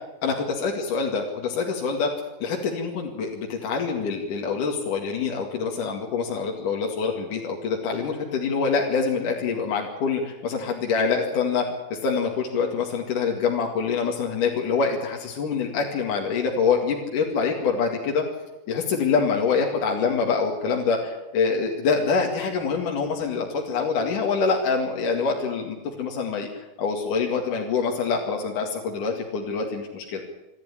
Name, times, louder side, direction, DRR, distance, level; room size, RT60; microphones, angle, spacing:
voice 1, 0.2-2.1 2.4-18.2 18.7-30.2, left 5 dB, 60° left, 0 dB, 3.5 m, -25 dB
26.5 x 12.0 x 10.0 m, 1.0 s
omnidirectional pair, 4.3 m